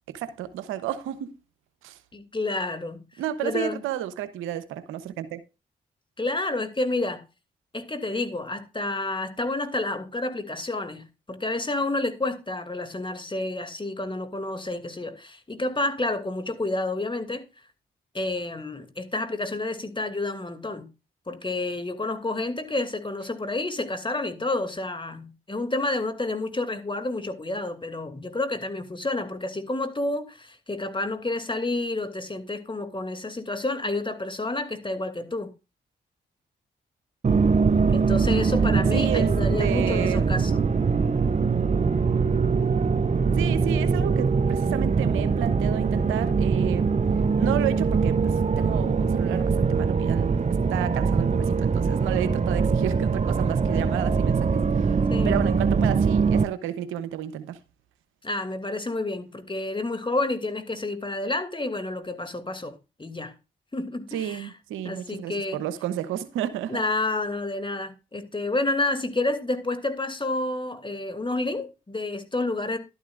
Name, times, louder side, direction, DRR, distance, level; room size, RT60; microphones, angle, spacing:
voice 1, 0.1-1.4 1.8-2.0 3.2-5.4 38.9-39.3 39.6-40.3 43.3-46.9 47.4-55.0 55.2-57.6 64.1-66.8, right 11 dB, 90° right, 0.9 m, -31 dB
voice 2, 2.1-3.0 3.4-3.8 6.2-7.2 7.7-17.5 18.1-20.9 21.3-35.5 37.9-40.6 52.2-52.3 55.1-55.4 58.2-63.3 63.7-64.5 64.8-65.6 66.7-72.8, left 2 dB, 25° left, 2.5 m, -29 dB
sound 1, 37.2-56.4, right 5 dB, 35° right, 0.8 m, -22 dB
12.0 x 11.0 x 2.5 m
supercardioid pair, 45°, 20 cm